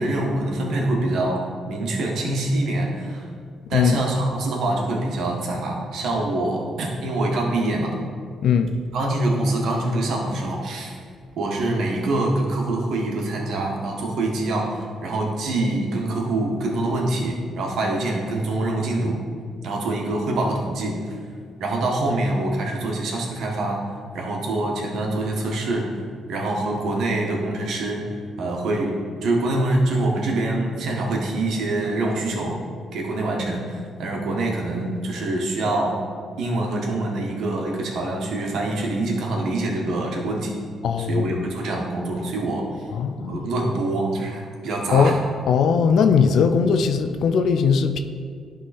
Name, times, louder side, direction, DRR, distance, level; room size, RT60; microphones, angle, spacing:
voice 1, 0.0-3.3 3.7-7.9 8.9-10.9 11.4-19.2 19.6-21.2 21.6-23.8 24.1-26.0 26.3-28.1 28.4-32.6 32.9-35.9 36.4-40.5 41.0-42.8 43.3-45.2, right 2 dB, 70° right, -1 dB, 1.5 m, -25 dB
voice 2, 8.4-8.8 40.8-41.4 42.9-43.4 44.9-45.1 45.5-48.0, left 6 dB, 70° left, 8 dB, 0.5 m, -19 dB
11.0 x 3.7 x 4.2 m, 2.1 s
cardioid pair, 90°, 0 cm